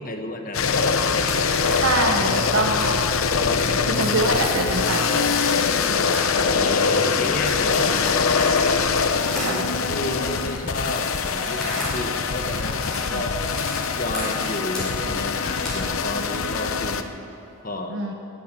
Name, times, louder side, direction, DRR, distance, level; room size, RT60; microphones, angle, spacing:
voice 1, 0.0-1.8 3.4-3.9 6.4-8.6 9.3-13.5 14.0-17.1 17.6-18.0, left 1 dB, 40° left, 4 dB, 1.3 m, -32 dB
sound 1, 0.5-17.0, left 5 dB, 70° left, 0.8 m, -23 dB
sound 2, 1.2-11.9 12.1-16.0, equal, 5° left, 5.0 m, -36 dB
voice 2, 1.8-3.0 3.8-6.0 9.4-9.6 13.1-13.2 17.9-18.1, right 2 dB, 60° right, 2 dB, 1.0 m, -25 dB
15.0 x 10.5 x 9.1 m, 2.9 s
head